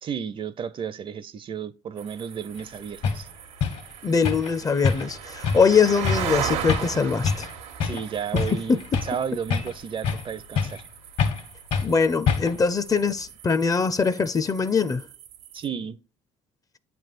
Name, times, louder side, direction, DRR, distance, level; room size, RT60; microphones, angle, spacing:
voice 1, 0.0-3.3 7.8-10.8 15.5-16.0, right 7 dB, 40° right, 0.5 m, -33 dB
sound 1, 2.0-15.7, right 9 dB, 80° right, 1.0 m, -37 dB
sound 2, 2.6-2.7 3.0-3.2 3.6-3.8 4.2-4.5 4.8-5.2 5.4-5.7 6.0-6.3 6.7-7.0 7.2-7.5 7.8-8.0 8.4-9.2 9.5-10.3 10.6-10.9 11.2-11.4 11.7-11.9 12.3-12.6, left 6 dB, 65° left, 1.5 m, -25 dB
voice 2, 4.0-7.5 8.7-8.8 11.8-15.0, left 5 dB, 25° left, 0.6 m, -22 dB
9.0 x 3.4 x 5.9 m
hypercardioid pair, 65°, 13 cm